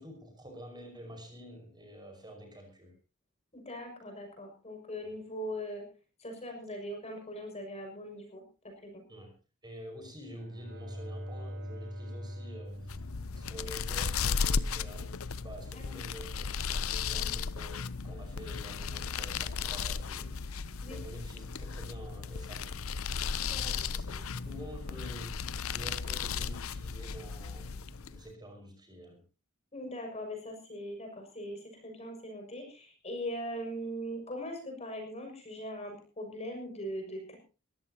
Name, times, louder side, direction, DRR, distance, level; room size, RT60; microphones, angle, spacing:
voice 1, 0.0-2.9 9.1-9.3 9.6-13.1 13.4-22.8 23.3-29.2, equal, 20° right, 4 dB, 5.5 m, -48 dB
voice 2, 3.5-5.8 6.2-9.0 15.7-15.8 17.2-17.3 20.8-21.0 23.5-23.7 29.7-37.4, equal, 30° left, 4 dB, 6.3 m, -40 dB
Bowed string instrument, 10.1-14.2, equal, 55° right, 5.0 m, -43 dB
sound 1, 12.7-28.2, left 5 dB, 70° left, 0.7 m, -35 dB
22.0 x 15.5 x 2.9 m, 0.33 s
head